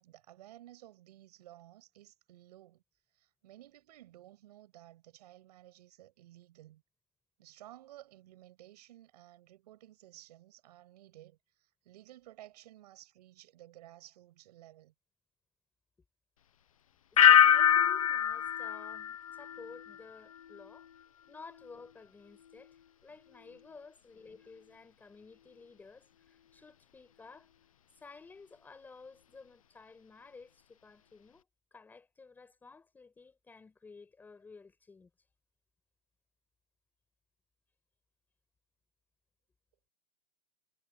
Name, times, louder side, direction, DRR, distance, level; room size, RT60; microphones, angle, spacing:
voice 1, 0.0-2.8 3.1-6.8 7.4-14.9, right 14 dB, 35° right, 7.4 m, -55 dB
voice 2, 17.1-27.5 27.9-35.1, left 4 dB, 5° left, 5.3 m, -54 dB
sound 1, 17.2-20.0 20.3-20.8, left 9 dB, 30° left, 0.5 m, -25 dB
hypercardioid pair, 170°, 33 cm